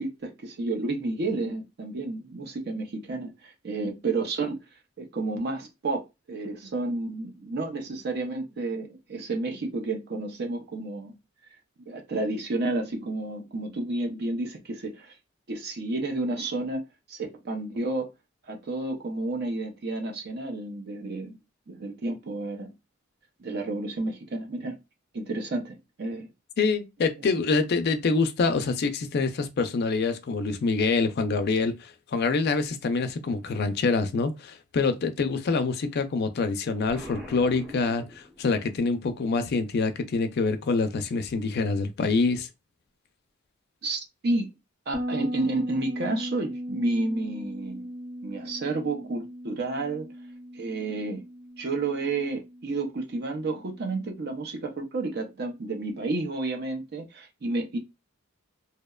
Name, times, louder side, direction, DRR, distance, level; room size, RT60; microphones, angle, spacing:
voice 1, 0.0-4.6 5.0-11.1 11.9-15.2 15.5-16.8 17.1-18.1 18.5-21.4 21.7-22.7 23.4-24.8 25.1-26.3 27.2-27.3 43.8-44.5 44.9-47.9 48.2-50.1 50.5-51.2 51.6-57.8, right 2 dB, 50° right, 0.5 m, -31 dB
voice 2, 26.6-42.5, left 4 dB, 50° left, 0.4 m, -26 dB
Explosion, 36.9-38.7, equal, 5° right, 0.7 m, -43 dB
Bass guitar, 44.9-54.3, equal, 30° right, 0.9 m, -38 dB
2.7 x 2.1 x 2.2 m
head